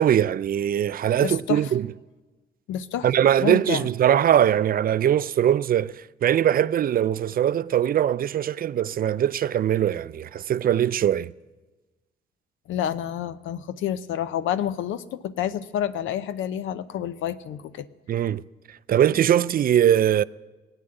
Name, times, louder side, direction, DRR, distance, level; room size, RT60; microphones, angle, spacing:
voice 1, 0.0-1.9 3.0-11.3 18.1-18.4 18.9-20.2, right 10 dB, 45° right, 0.4 m, -21 dB
voice 2, 1.2-1.7 2.7-3.1 3.4-3.9 12.7-17.9, left 10 dB, 85° left, 0.7 m, -29 dB
18.0 x 9.1 x 7.8 m
cardioid pair, 90°, 20 cm